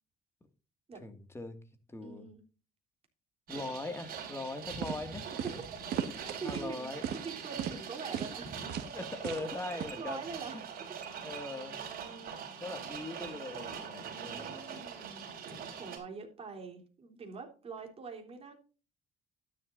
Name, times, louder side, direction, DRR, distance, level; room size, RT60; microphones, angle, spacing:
voice 1, 1.0-1.6 1.9-2.3 3.5-5.6 6.4-7.0 8.9-10.2 10.5-10.6 11.2-11.8 12.6-14.6, left 2 dB, 15° left, 8 dB, 2.0 m, -41 dB
voice 2, 2.0-2.4 3.5-3.6 5.7-5.8 6.2-6.9 7.1-8.9 9.6-12.6 13.8-18.5, right 5 dB, 35° right, 2 dB, 3.6 m, -46 dB
sound 1, 3.5-16.0, right 7 dB, 60° right, 4.4 m, -43 dB
sound 2, 4.5-4.6 4.8-5.0 5.4-5.6 5.9-6.7 7.0-7.3 7.6-7.8 8.1-8.4 8.7-8.9 9.2-9.5 9.8-9.9, right 9 dB, 75° right, 1.7 m, -36 dB
13.0 x 10.5 x 2.6 m, 0.36 s
cardioid pair, 110°, 17 cm